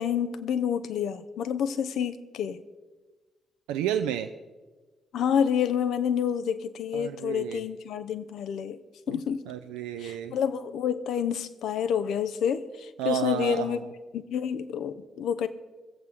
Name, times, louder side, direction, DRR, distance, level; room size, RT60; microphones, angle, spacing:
voice 1, 0.0-2.6 5.1-8.8 9.1-9.5 10.0-13.8 14.1-15.5, left 8 dB, 60° left, 12 dB, 0.7 m, -28 dB
voice 2, 3.7-4.3 6.9-7.7 9.1-9.2 9.5-10.3 13.0-13.9, right 10 dB, 70° right, 7 dB, 0.4 m, -31 dB
21.0 x 8.1 x 4.8 m, 1.3 s
figure-of-eight pair, 40°, 0 cm